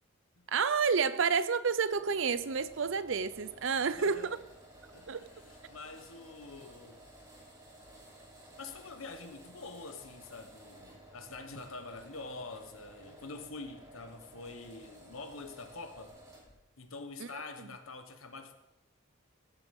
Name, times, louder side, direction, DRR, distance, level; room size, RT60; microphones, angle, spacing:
voice 1, 0.5-4.4 5.1-5.2 17.2-17.7, right 5 dB, 70° right, 0.6 m, -30 dB
sound 1, 1.9-16.6, right 1 dB, 20° right, 4.2 m, -55 dB
voice 2, 3.9-4.3 4.9-7.0 8.6-16.2 16.8-18.5, left 3 dB, 85° left, 1.3 m, -46 dB
16.0 x 7.3 x 5.4 m
head